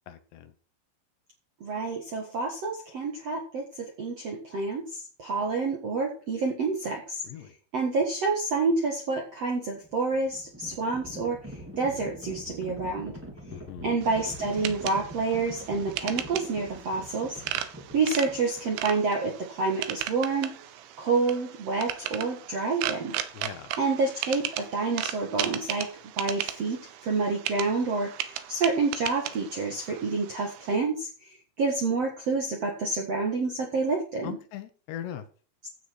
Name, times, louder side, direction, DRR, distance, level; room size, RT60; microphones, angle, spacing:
voice 1, 0.1-0.5 7.2-7.5 13.5-13.9 23.3-23.7 34.2-35.3, left 10 dB, 75° left, 10 dB, 3.0 m, -40 dB
voice 2, 1.6-7.2 7.7-13.1 13.8-20.5 21.0-23.1 23.8-25.9 26.2-34.4, right 3 dB, 60° right, 1 dB, 1.7 m, -28 dB
Livestock farm animals working animals, 9.8-18.8, equal, 5° right, 0.9 m, -44 dB
sound 1, 14.0-30.8, right 11 dB, 75° right, 3.3 m, -36 dB
15.5 x 7.2 x 4.7 m, 0.38 s
omnidirectional pair, 5.4 m